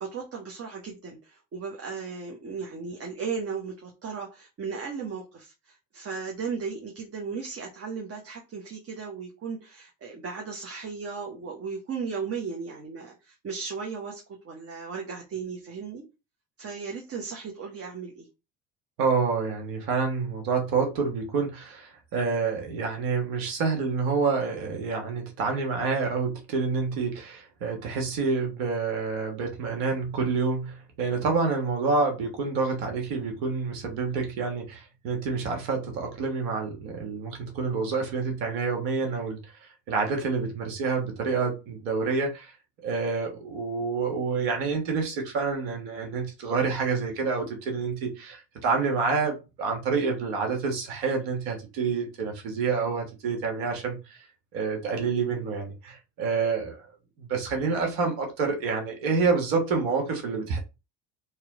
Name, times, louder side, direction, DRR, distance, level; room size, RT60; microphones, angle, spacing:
voice 1, 0.0-16.0 16.6-18.3, right 5 dB, 40° right, 1.1 m, -36 dB
voice 2, 19.0-39.5 39.9-42.5 42.8-54.2 54.5-56.8 57.2-60.6, right 4 dB, 75° right, 1.5 m, -28 dB
3.2 x 3.0 x 3.6 m
hypercardioid pair, 70°, 38 cm